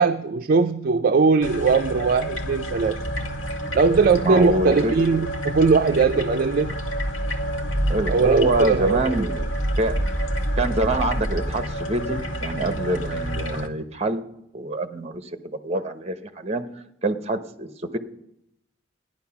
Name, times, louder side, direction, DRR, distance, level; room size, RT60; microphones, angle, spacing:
voice 1, 0.0-3.0 3.7-6.8 8.1-9.3, right 4 dB, 50° right, 7 dB, 0.5 m, -20 dB
sound 1, 1.4-13.7, equal, 85° left, 1.1 m, -28 dB
voice 2, 4.2-4.9 7.9-9.3 9.7-10.0 10.6-14.2 14.5-16.6 17.0-17.7, right 2 dB, 35° right, 9 dB, 1.0 m, -25 dB
13.5 x 10.5 x 5.8 m, 0.80 s
head